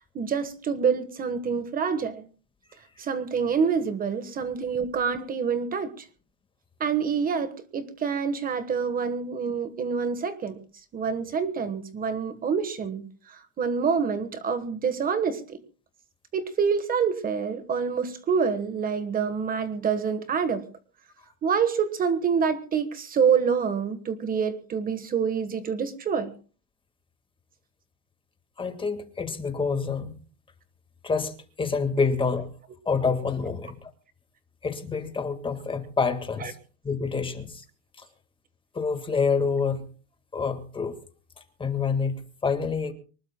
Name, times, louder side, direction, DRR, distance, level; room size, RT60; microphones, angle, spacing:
voice 1, 0.1-2.2 3.0-6.0 6.8-10.6 10.9-15.6 16.3-20.6 21.4-26.3 36.4-36.5, right 6 dB, 25° right, 11 dB, 1.3 m, -27 dB
voice 2, 28.6-30.1 31.0-31.3 31.6-32.5 32.8-33.8 34.6-36.5 36.8-37.5 38.7-39.8 40.3-40.9 41.6-42.9, left 5 dB, 15° left, 7 dB, 1.7 m, -27 dB
24.5 x 20.0 x 2.2 m, 0.37 s
cardioid pair, 155°, 32 cm